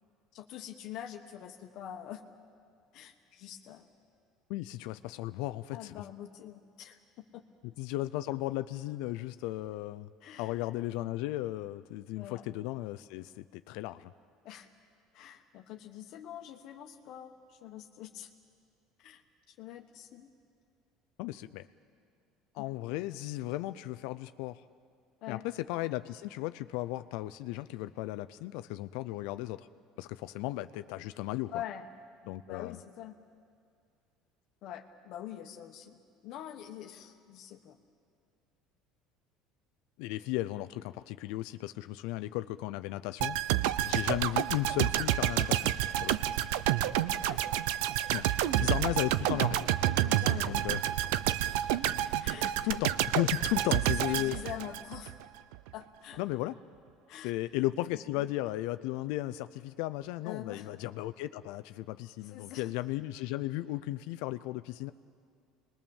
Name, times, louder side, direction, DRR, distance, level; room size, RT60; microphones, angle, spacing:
voice 1, 0.3-2.2 2.9-3.9 5.7-7.4 10.2-10.6 12.2-12.4 14.4-14.7 15.1-18.3 19.0-20.3 25.2-25.4 31.5-31.9 32.5-33.2 34.6-37.8 43.9-44.0 47.2-47.4 50.1-50.6 52.2-52.8 53.6-55.2 55.7-56.2 57.1-57.3 58.1-58.3 60.2-60.7 62.2-62.7, left 11 dB, 55° left, 5 dB, 1.2 m, -45 dB
voice 2, 4.5-6.0 7.8-10.1 10.4-14.1 21.2-21.7 22.5-24.6 25.3-29.7 30.0-31.5 32.3-32.8 40.0-43.4 43.8-45.7 46.0-46.2 48.1-48.3 48.6-49.7 50.5-50.8 52.6-54.4 56.2-56.6 57.2-64.9, left 16 dB, 75° left, 12 dB, 0.5 m, -35 dB
sound 1, 43.2-55.2 55.5-55.7, right 13 dB, 85° right, 0.6 m, -29 dB
27.5 x 21.0 x 7.2 m, 2.3 s
cardioid pair, 145°, 0 cm